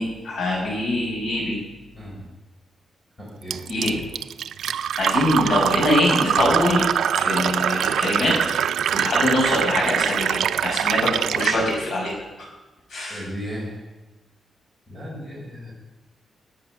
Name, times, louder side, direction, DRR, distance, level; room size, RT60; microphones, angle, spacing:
voice 1, 0.0-1.6 3.7-4.0 4.9-6.8 7.1-8.4 8.9-12.1 12.9-13.2, left 1 dB, 65° left, -2 dB, 6.1 m, -23 dB
voice 2, 3.2-3.6 13.1-13.8 14.9-15.7, equal, 10° left, -3 dB, 4.5 m, -35 dB
Fill (with liquid), 3.5-11.6, right 9 dB, 90° right, 0.4 m, -23 dB
18.5 x 8.6 x 6.2 m, 1.1 s
wide cardioid pair, 180°, 0 cm